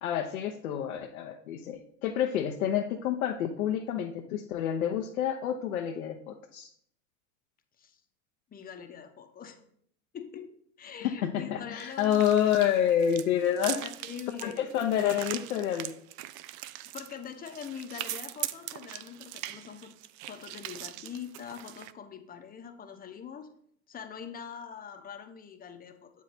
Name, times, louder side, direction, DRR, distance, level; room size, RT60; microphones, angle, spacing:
voice 1, 0.0-6.7 11.0-13.8 14.4-15.9, left 9 dB, 75° left, 3 dB, 0.8 m, -28 dB
voice 2, 8.5-9.6 10.1-10.5 10.8-12.2 13.6-14.6 16.9-20.0 20.3-23.5 23.9-26.1, left 8 dB, 20° left, 5 dB, 0.9 m, -43 dB
sound 1, 11.8-21.9, right 14 dB, 55° right, 0.5 m, -41 dB
7.4 x 4.7 x 4.1 m, 0.67 s
hypercardioid pair, 100°, 42 cm